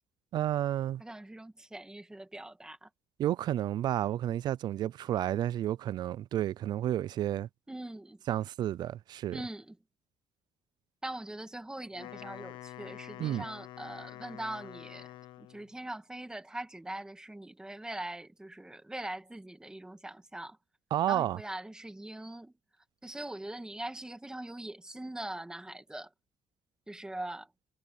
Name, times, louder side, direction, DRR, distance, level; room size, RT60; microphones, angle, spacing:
voice 1, 0.3-1.0 3.2-7.5 8.3-9.4 13.2-13.4 20.9-21.4, right 12 dB, 55° right, 0.4 m, -31 dB
voice 2, 1.0-2.9 7.7-8.2 9.3-9.8 11.0-15.1 15.4-20.6 21.1-22.5 23.0-26.1 26.9-27.5, right 1 dB, 10° right, 2.0 m, -42 dB
Wind instrument woodwind instrument, 11.8-15.7, left 14 dB, 75° left, 1.0 m, -47 dB
cardioid pair, 115°, 8 cm